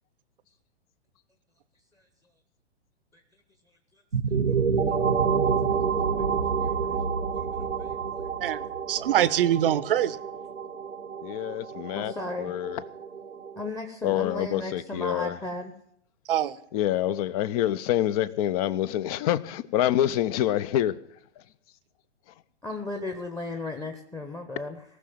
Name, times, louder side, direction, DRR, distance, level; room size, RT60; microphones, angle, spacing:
sound 1, 4.1-13.7, right 6 dB, 85° right, 1.0 m, -28 dB
voice 1, 8.4-10.2 16.3-16.6, right 11 dB, 50° right, 0.8 m, -24 dB
voice 2, 11.2-12.8 14.0-15.4 16.7-20.9, left 12 dB, 35° left, 0.7 m, -26 dB
voice 3, 11.9-12.6 13.6-15.7 22.6-24.8, left 2 dB, 10° left, 1.1 m, -35 dB
18.5 x 6.5 x 9.4 m
figure-of-eight pair, 115°, 35 cm